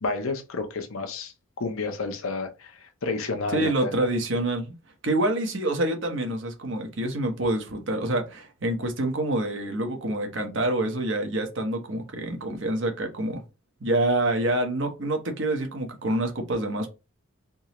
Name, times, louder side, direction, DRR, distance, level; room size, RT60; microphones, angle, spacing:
voice 1, 0.0-1.3 1.6-3.9, left 3 dB, 85° left, 0.8 m, -30 dB
voice 2, 3.5-4.8 5.0-13.4 13.8-16.9, right 1 dB, 60° right, 0.9 m, -27 dB
3.6 x 2.8 x 3.0 m
head